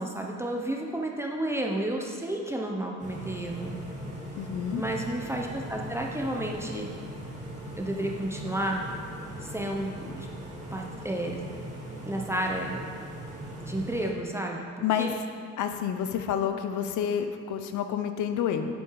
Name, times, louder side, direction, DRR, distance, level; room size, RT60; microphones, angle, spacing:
voice 1, 0.0-3.8 4.7-6.9 7.8-8.8 9.4-10.3 10.7-11.4 12.0-12.8 13.6-14.7 15.0-15.1, right 1 dB, 10° right, 0 dB, 1.0 m, -31 dB
sound 1, 3.0-14.1, right 1 dB, 25° right, 2.4 m, -40 dB
voice 2, 4.4-4.8 14.8-15.2 15.6-18.7, left 8 dB, 80° left, 8 dB, 0.8 m, -29 dB
8.5 x 8.2 x 4.9 m, 2.1 s
cardioid pair, 90°, 30 cm